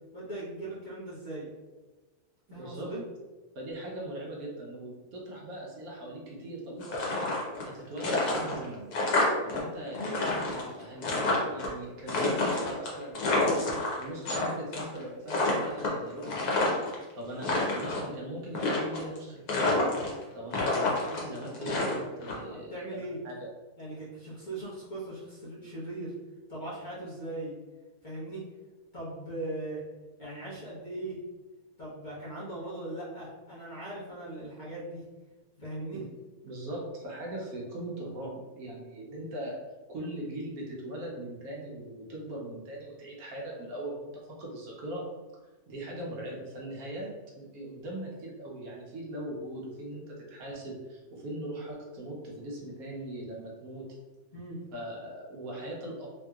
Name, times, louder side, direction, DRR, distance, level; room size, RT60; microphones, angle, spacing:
voice 1, 0.1-1.5 2.5-3.0 9.9-10.3 22.5-23.2 23.8-26.1 26.5-27.5 28.0-28.4 28.9-29.8 30.2-31.2 31.8-35.0 35.6-36.0 36.7-36.8 54.3-54.6, right 1 dB, 35° left, -9 dB, 0.9 m, -39 dB
voice 2, 2.5-2.9 3.5-7.2 7.6-8.9 9.4-13.6 14.0-16.8 17.2-19.8 20.3-23.5 35.9-36.1 36.4-39.6 39.9-44.1 44.4-45.0 45.7-53.9 54.7-56.1, right 1 dB, 70° right, -3 dB, 1.2 m, -40 dB
sound 1, 6.8-7.7 8.0-9.6 9.9-11.7 12.1-14.4 14.7-15.0 15.3-16.9 17.3-18.1 18.5-19.2 19.5-20.2 20.5-22.3, left 2 dB, 90° left, 1.3 m, -28 dB
3.3 x 2.8 x 2.3 m, 1.2 s
omnidirectional pair, 1.6 m